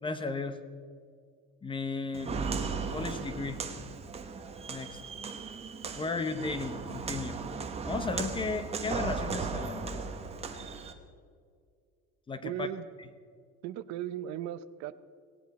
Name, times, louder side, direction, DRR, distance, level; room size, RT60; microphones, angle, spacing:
voice 1, 0.0-0.6 1.6-2.3 2.9-3.6 4.7-5.0 5.9-7.4 7.8-10.1 12.3-12.7, left 3 dB, 15° left, 11 dB, 0.7 m, -35 dB
Walk footsteps, 2.1-10.9, right 5 dB, 20° right, 1.1 m, -36 dB
voice 2, 12.4-12.8 13.6-14.9, right 11 dB, 60° right, 14 dB, 0.7 m, -37 dB
18.5 x 18.0 x 4.1 m, 2.1 s
cardioid pair, 170°, 32 cm